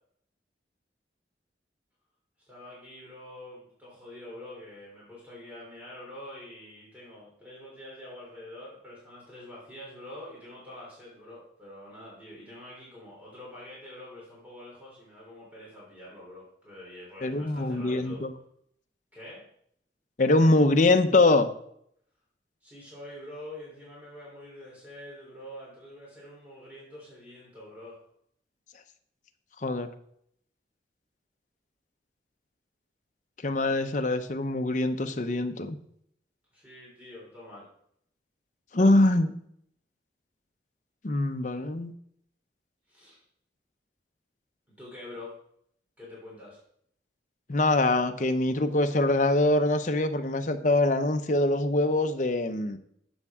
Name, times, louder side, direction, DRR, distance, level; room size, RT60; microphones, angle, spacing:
voice 1, 2.5-18.2 19.1-19.4 22.6-28.0 36.5-37.7 42.9-43.2 44.7-45.3 46.0-46.6, left 1 dB, 10° right, -6 dB, 3.3 m, -46 dB
voice 2, 17.2-18.3 20.2-21.5 29.6-29.9 33.4-35.8 38.7-39.3 41.0-41.9 47.5-52.8, left 2 dB, 45° left, 7 dB, 0.7 m, -23 dB
11.5 x 7.2 x 3.6 m, 0.69 s
head